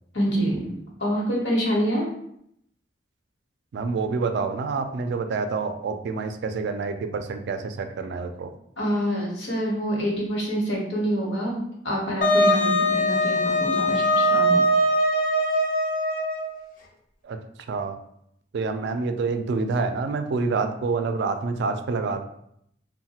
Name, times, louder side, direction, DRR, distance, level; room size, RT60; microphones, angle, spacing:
voice 1, 0.1-0.7 1.0-2.1 8.8-11.6 11.8-14.6, equal, 70° left, -3 dB, 1.0 m, -26 dB
voice 2, 3.7-8.5 17.2-17.4 17.7-18.0 18.5-22.2, right 4 dB, 65° right, 7 dB, 0.3 m, -27 dB
Wind instrument woodwind instrument, 12.2-16.6, equal, 50° left, 0.5 m, -21 dB
3.1 x 2.1 x 2.8 m, 0.73 s
head